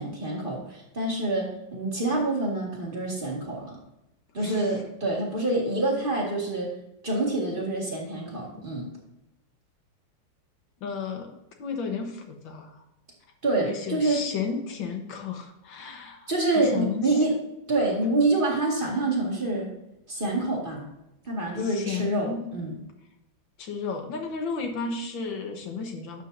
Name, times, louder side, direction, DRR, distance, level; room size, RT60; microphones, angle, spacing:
voice 1, 0.0-3.8 4.3-6.7 7.0-8.9 13.4-14.2 16.3-17.3 17.7-19.7 20.1-20.9 21.3-22.8, right 2 dB, 25° right, -3 dB, 2.2 m, -26 dB
voice 2, 10.8-12.8 13.6-16.3 16.6-17.3 21.6-22.5 23.6-26.2, left 5 dB, 85° left, 4 dB, 1.9 m, -33 dB
11.5 x 7.3 x 2.7 m, 0.89 s
omnidirectional pair, 2.0 m